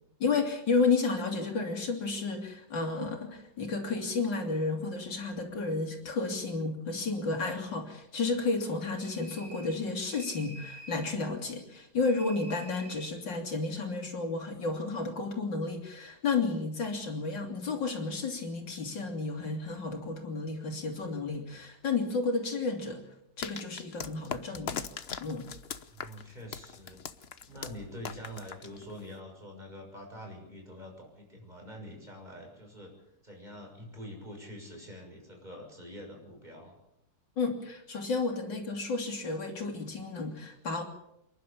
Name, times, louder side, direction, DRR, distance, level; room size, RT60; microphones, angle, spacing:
voice 1, 0.2-23.1 23.4-24.9 25.2-25.5 37.4-40.8, left 4 dB, 85° left, 3 dB, 3.7 m, -32 dB
sound 1, 9.0-9.8 10.1-11.0 12.0-13.1, right 2 dB, 40° right, 6.9 m, -49 dB
sound 2, 23.4-29.2, left 6 dB, 45° left, 1.0 m, -40 dB
voice 2, 25.9-27.0 27.5-32.9 33.2-36.8, equal, 25° right, 1 dB, 6.9 m, -45 dB
28.5 x 11.5 x 8.7 m, 0.80 s
omnidirectional pair, 1.9 m